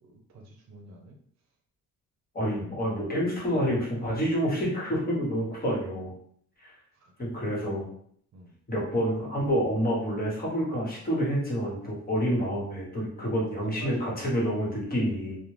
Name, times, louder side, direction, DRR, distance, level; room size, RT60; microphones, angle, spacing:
voice 1, 0.0-1.2 2.8-3.8 6.9-7.1 8.3-8.5 12.2-12.4 13.3-14.3, right 3 dB, 65° right, 2 dB, 0.6 m, -48 dB
voice 2, 2.3-6.1 6.6-6.7 7.2-7.9 8.7-15.4, equal, 30° left, -4 dB, 1.1 m, -28 dB
2.3 x 2.1 x 3.2 m, 0.65 s
cardioid pair, 90°, 30 cm